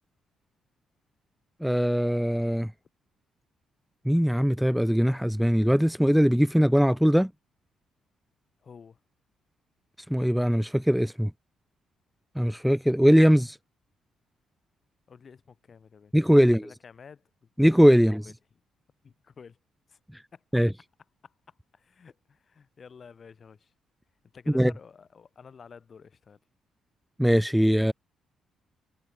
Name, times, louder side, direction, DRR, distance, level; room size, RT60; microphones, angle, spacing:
voice 1, 1.6-2.7 4.1-7.3 10.1-11.3 12.4-13.6 16.1-16.7 17.6-18.3 20.1-20.2 20.5-20.7 24.5-24.7 27.2-27.9, equal, ahead, 0.3 m, -21 dB
voice 2, 8.6-9.0 15.1-17.2 18.0-18.3 19.0-19.6 19.9-20.0 20.3-20.4 21.2-21.3 21.7-23.7 24.3-26.4, left 6 dB, 45° left, 4.0 m, -50 dB
cardioid pair, 90°, 0 cm